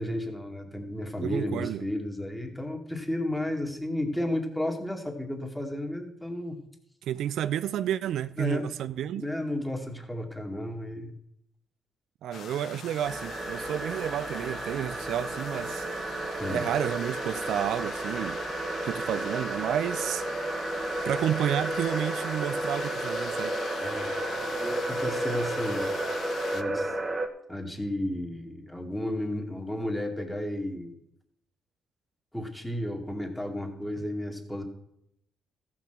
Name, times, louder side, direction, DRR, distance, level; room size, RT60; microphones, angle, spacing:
voice 1, 0.0-6.6 8.4-8.7 9.1-11.1 16.4-16.7 23.8-24.1 24.3-25.9 26.5-26.9 27.5-31.0 32.3-34.6, left 1 dB, 5° left, 2.2 m, -33 dB
voice 2, 1.2-1.8 7.0-9.3 12.2-15.9 16.5-18.4 18.8-20.2 21.0-23.6, right 10 dB, 80° right, 0.4 m, -31 dB
sound 1, 12.3-26.6, left 7 dB, 65° left, 0.7 m, -42 dB
sound 2, 13.0-27.3, right 2 dB, 25° right, 1.3 m, -32 dB
14.5 x 6.0 x 6.0 m
cardioid pair, 90°, 0 cm